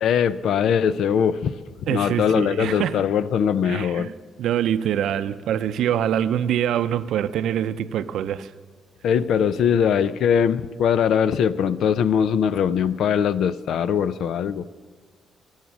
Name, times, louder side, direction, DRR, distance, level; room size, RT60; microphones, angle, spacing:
voice 1, 0.0-1.5 1.8-4.1 9.0-14.7, left 8 dB, 70° left, 0.5 m, -21 dB
voice 2, 1.9-3.0 3.7-4.1 4.4-8.5, right 10 dB, 75° right, 0.5 m, -24 dB
21.0 x 7.3 x 6.1 m
cardioid pair, 90°, 0 cm